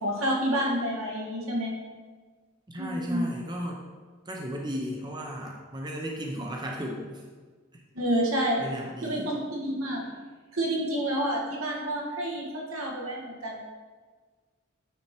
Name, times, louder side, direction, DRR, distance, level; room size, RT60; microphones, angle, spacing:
voice 1, 0.0-1.8 2.8-3.3 7.9-8.6 9.0-10.1 10.5-13.6, equal, 80° right, -2 dB, 1.7 m, -29 dB
voice 2, 2.7-3.8 4.3-7.2 8.6-9.3, equal, 20° right, 0 dB, 0.7 m, -35 dB
9.1 x 4.4 x 4.4 m, 1.5 s
head